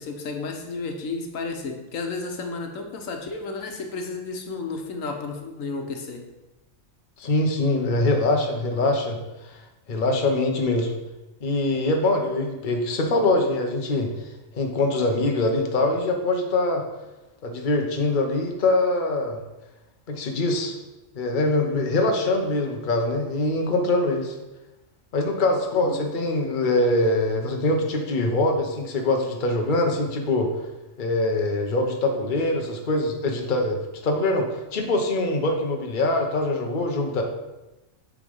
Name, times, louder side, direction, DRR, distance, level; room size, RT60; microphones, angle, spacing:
voice 1, 0.0-6.2 25.7-26.1, left 3 dB, 90° left, 4 dB, 1.4 m, -32 dB
voice 2, 7.2-9.2 9.4-9.6 9.9-10.9 11.4-14.1 14.5-16.8 17.4-19.4 20.1-20.7 21.1-24.4 25.1-30.5 31.0-33.8 34.0-37.2, left 2 dB, 45° left, 3 dB, 1.0 m, -23 dB
8.2 x 3.7 x 5.4 m, 1.0 s
omnidirectional pair, 1.3 m